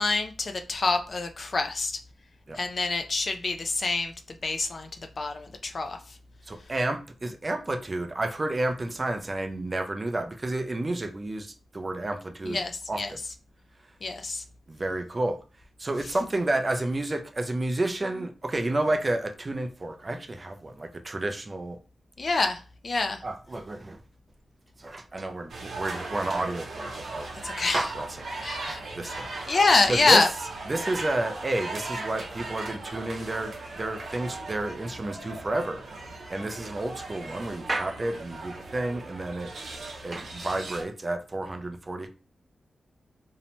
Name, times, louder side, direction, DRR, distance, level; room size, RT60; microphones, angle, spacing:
voice 1, 0.0-2.0 2.5-4.1 4.4-6.2 12.4-13.1 14.0-14.4 22.2-23.2 27.4-27.9 28.4-30.3, left 3 dB, 50° left, 0.4 m, -26 dB
voice 2, 6.5-12.6 12.9-13.2 14.7-15.4 15.8-21.8 23.2-24.0 24.8-27.3 27.7-28.2 28.9-30.3 30.6-39.6 40.0-42.1, right 2 dB, 30° right, 0.3 m, -31 dB
sound 1, 25.5-40.8, right 2 dB, 75° right, 0.6 m, -38 dB
2.7 x 2.1 x 2.9 m
wide cardioid pair, 100°, 0 cm